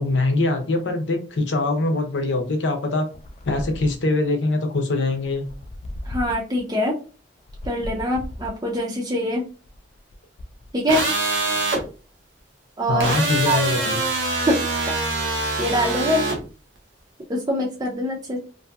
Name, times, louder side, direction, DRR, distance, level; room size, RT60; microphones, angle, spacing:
voice 1, 0.0-3.1 3.5-5.5 12.9-14.0, left 2 dB, 85° left, 5 dB, 0.7 m, -23 dB
sound 1, 3.1-4.3 5.1-6.6 7.4-8.8 9.5-10.7, left 1 dB, 35° left, 0.3 m, -36 dB
voice 2, 6.0-6.9 7.6-9.4 10.7-11.0 12.8-13.1 13.4-13.6 14.5-14.6 15.6-16.2 17.3-18.4, equal, 20° right, -2 dB, 0.5 m, -23 dB
sound 2, 10.9-11.8 13.0-16.4, right 2 dB, 85° right, 0.8 m, -24 dB
2.6 x 2.6 x 2.3 m, 0.36 s
head